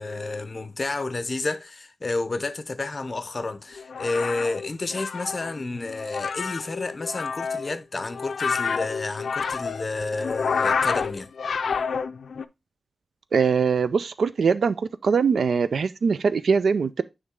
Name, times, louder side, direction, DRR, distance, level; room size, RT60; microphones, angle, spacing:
voice 1, 0.0-11.3, left 3 dB, 35° left, 0.6 m, -30 dB
sound 1, 3.8-12.4, left 5 dB, 90° left, 0.4 m, -29 dB
voice 2, 13.3-14.8 15.0-17.0, right 5 dB, 80° right, 0.3 m, -22 dB
9.5 x 3.2 x 3.6 m
wide cardioid pair, 135°, 0 cm